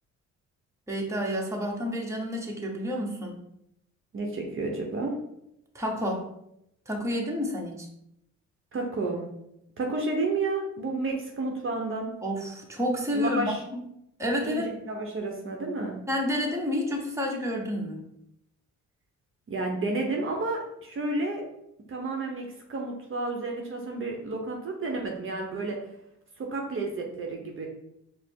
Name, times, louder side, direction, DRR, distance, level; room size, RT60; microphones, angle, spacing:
voice 1, 0.9-3.4 5.7-6.2 6.9-7.9 12.2-13.8 14.2-14.6 16.1-18.0, equal, 10° right, -1 dB, 0.9 m, -29 dB
voice 2, 4.1-5.1 8.7-9.2 9.8-12.1 13.1-13.6 14.4-16.0 19.5-21.4 21.9-25.8 26.4-27.7, right 3 dB, 45° right, 1 dB, 0.8 m, -31 dB
5.0 x 2.0 x 4.4 m, 0.79 s
cardioid pair, 90°, 30 cm